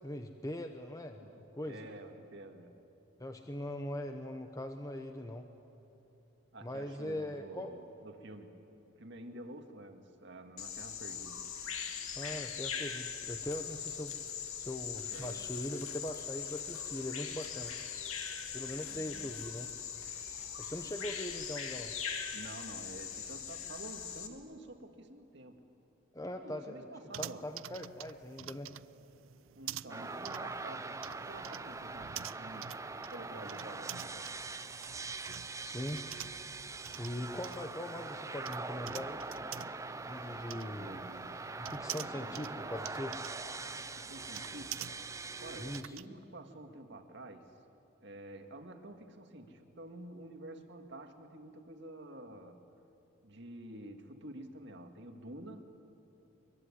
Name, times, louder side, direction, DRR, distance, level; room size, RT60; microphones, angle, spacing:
voice 1, 0.0-1.2 1.5-1.9 3.2-5.5 6.6-7.7 12.2-14.1 14.6-17.7 18.5-19.7 20.6-21.9 26.1-26.9 27.2-28.7 35.6-36.0 37.0-39.2 40.1-41.0 41.6-43.2 45.6-46.0, left 1 dB, 15° left, 5 dB, 0.9 m, -41 dB
voice 2, 1.2-2.7 6.5-8.6 9.0-11.5 15.1-15.4 18.9-19.3 22.3-25.6 26.3-27.5 29.5-32.8 33.1-34.3 40.5-41.4 42.2-42.3 44.0-47.5 48.0-52.6 53.2-55.7, right 1 dB, 55° right, 5 dB, 2.1 m, -49 dB
Bird vocalization bird call bird song, 10.6-24.3, left 7 dB, 80° left, 2.2 m, -41 dB
sound 1, 27.1-46.1, right 11 dB, 75° right, 0.5 m, -48 dB
sound 2, 29.9-45.8, right 3 dB, 15° right, 0.6 m, -43 dB
24.5 x 23.0 x 9.9 m, 2.9 s
head